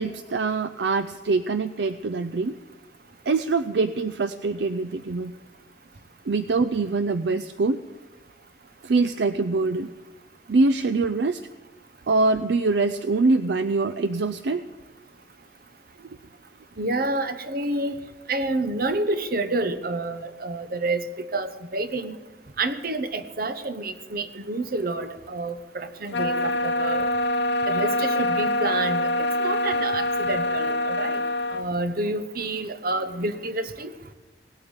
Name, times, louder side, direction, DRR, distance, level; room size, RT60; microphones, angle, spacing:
voice 1, 0.0-2.6 3.3-5.3 6.3-7.8 8.8-9.9 10.5-11.4 12.1-14.6, right 3 dB, 70° right, 12 dB, 0.5 m, -24 dB
voice 2, 16.8-18.0 18.3-22.2 22.6-27.0 27.7-31.2 31.5-33.9, right 2 dB, 55° right, 10 dB, 1.0 m, -28 dB
sound 1, 26.1-31.7, left 1 dB, 75° left, 0.9 m, -25 dB
18.0 x 8.7 x 8.0 m, 1.2 s
head